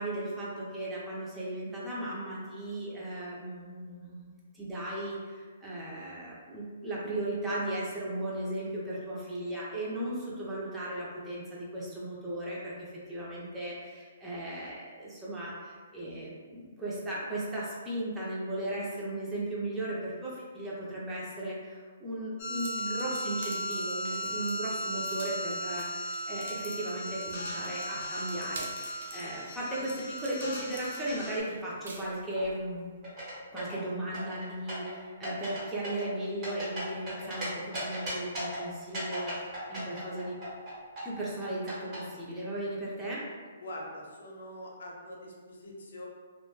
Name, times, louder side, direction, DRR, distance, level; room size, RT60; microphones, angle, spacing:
voice 1, 0.0-32.9 33.5-40.4 41.0-43.2, right 1 dB, 5° right, -8 dB, 0.6 m, -36 dB
sound 1, 22.4-31.4, equal, 55° left, 1.1 m, -36 dB
sound 2, 22.5-32.6, right 3 dB, 70° right, 0.5 m, -48 dB
sound 3, 33.0-33.8 34.1-34.9 35.2-35.6 35.8-37.4 37.7-38.6 38.9-42.0, right 1 dB, 25° right, 1.2 m, -37 dB
voice 2, 43.6-46.1, left 1 dB, 75° left, -2 dB, 0.6 m, -43 dB
2.9 x 2.1 x 2.2 m, 1.5 s
hypercardioid pair, 150°, 0 cm